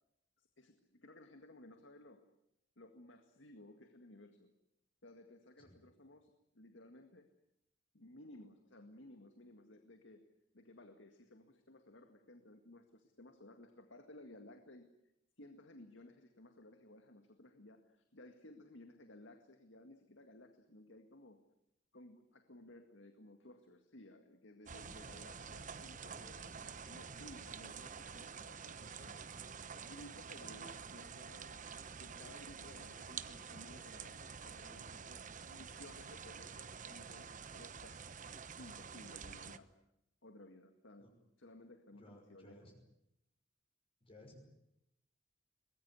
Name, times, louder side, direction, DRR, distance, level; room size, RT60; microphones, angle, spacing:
voice 1, 0.4-2.3 2.8-4.5 5.0-7.3 7.9-14.9 15.4-21.4 21.9-26.2 26.9-29.2 29.8-39.7 40.2-41.1 41.4-42.7, left 1 dB, 85° left, 6 dB, 2.0 m, -58 dB
sound 1, 24.7-39.6, right 6 dB, 45° right, 1.0 m, -49 dB
voice 2, 26.0-26.7 41.0-41.1 42.0-42.8 44.0-44.4, left 1 dB, 30° left, 2 dB, 5.6 m, -59 dB
23.0 x 20.5 x 9.6 m, 0.84 s
head